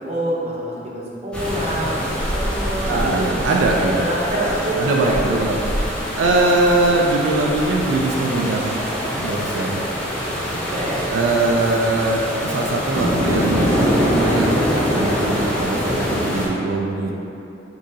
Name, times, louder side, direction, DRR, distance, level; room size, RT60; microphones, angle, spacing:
voice 1, 0.0-3.1 3.8-5.3 10.6-11.0, right 1 dB, 35° right, -5 dB, 0.7 m, -26 dB
sound 1, 1.3-16.5, equal, 5° left, 0.6 m, -24 dB
voice 2, 2.8-4.0 4.8-8.8 9.1-9.9 11.1-17.2, right 2 dB, 85° right, -1 dB, 0.4 m, -21 dB
3.8 x 3.6 x 2.7 m, 2.9 s
head